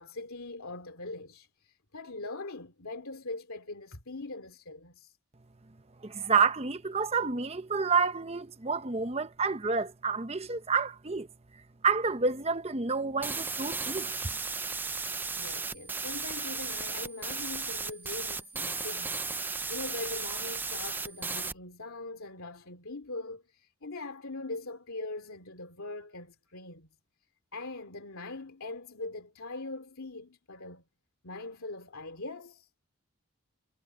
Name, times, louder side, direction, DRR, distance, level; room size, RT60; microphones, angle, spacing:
voice 1, 0.0-5.2 15.1-26.9 27.5-30.8 31.2-32.7, left 2 dB, 80° left, 2.6 m, -42 dB
voice 2, 6.0-11.3 11.8-14.3, right 5 dB, 30° right, 0.8 m, -29 dB
sound 1, 13.2-21.5, right 4 dB, 10° right, 0.4 m, -35 dB
head